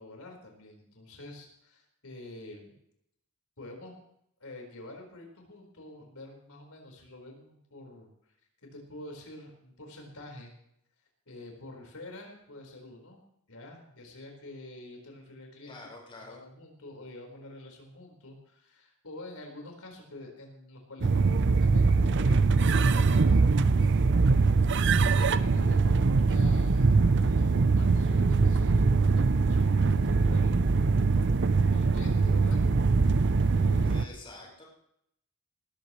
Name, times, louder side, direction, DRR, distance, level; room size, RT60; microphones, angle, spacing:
voice 1, 0.0-2.8 3.6-4.0 4.4-8.1 8.6-10.5 11.3-13.2 13.5-15.8 16.2-24.1 24.9-30.6 31.7-32.7 33.5-34.5, left 2 dB, 85° left, 1 dB, 4.6 m, -47 dB
voice 2, 15.7-16.4 33.8-34.6, left 2 dB, 25° left, -2 dB, 5.2 m, -47 dB
sound 1, 21.0-34.0, right 4 dB, 55° right, 0.6 m, -23 dB
19.0 x 15.0 x 3.2 m, 0.75 s
head